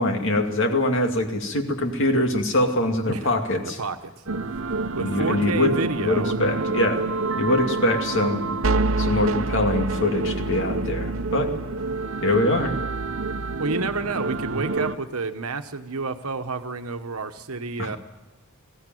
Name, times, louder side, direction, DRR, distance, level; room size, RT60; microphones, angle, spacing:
voice 1, 0.0-3.8 5.0-7.0 7.4-8.4 9.0-11.5 12.2-12.7 17.8-17.9, left 1 dB, 60° left, 4 dB, 2.4 m, -23 dB
voice 2, 3.1-4.2 4.9-6.7 13.6-18.0, right 3 dB, 90° right, 9 dB, 1.3 m, -30 dB
sound 1, 4.3-15.0, right 3 dB, 70° right, 0.9 m, -27 dB
20.5 x 16.0 x 9.2 m, 1.1 s
head